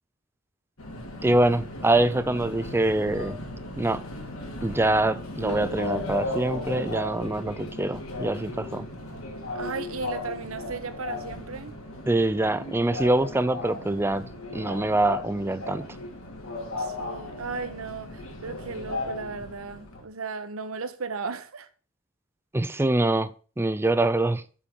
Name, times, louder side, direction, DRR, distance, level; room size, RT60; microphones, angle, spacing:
Subway metro underground, 0.8-20.0, left 2 dB, 90° left, 2.7 m, -36 dB
voice 1, 1.2-3.4 3.8-4.0 4.6-8.8 12.1-14.2 14.5-15.9 22.5-23.3 23.6-24.4, right 2 dB, 10° right, 0.5 m, -24 dB
voice 2, 9.6-11.8 16.8-21.7, right 4 dB, 75° right, 1.0 m, -35 dB
7.2 x 6.8 x 7.1 m
head